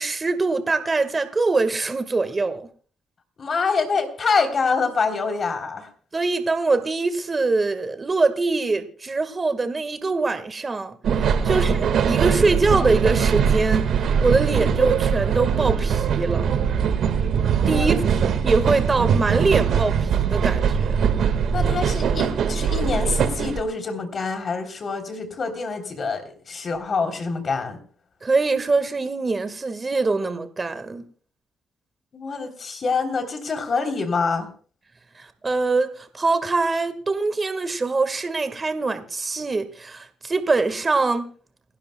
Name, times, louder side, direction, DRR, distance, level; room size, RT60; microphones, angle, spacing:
voice 1, 0.0-2.7 6.1-16.5 17.7-18.0 18.4-21.0 28.2-31.0 35.1-41.3, right 3 dB, 30° right, 1.7 m, -23 dB
voice 2, 3.4-5.9 11.4-11.7 17.7-18.0 21.5-27.8 32.1-34.5, left 4 dB, 45° left, 3.5 m, -26 dB
sound 1, 11.0-23.6, right 7 dB, 70° right, 1.8 m, -21 dB
29.0 x 12.0 x 2.3 m
cardioid pair, 90°, 0 cm